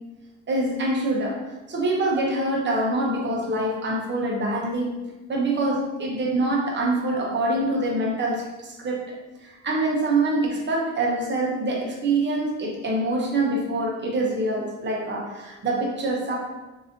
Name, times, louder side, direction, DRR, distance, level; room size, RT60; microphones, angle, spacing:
voice 1, 0.5-1.4 1.7-5.0 5.3-8.4 8.8-9.0 9.6-16.4, right 2 dB, 35° right, -2 dB, 0.9 m, -25 dB
3.0 x 2.7 x 2.8 m, 1.1 s
cardioid pair, 90°, 30 cm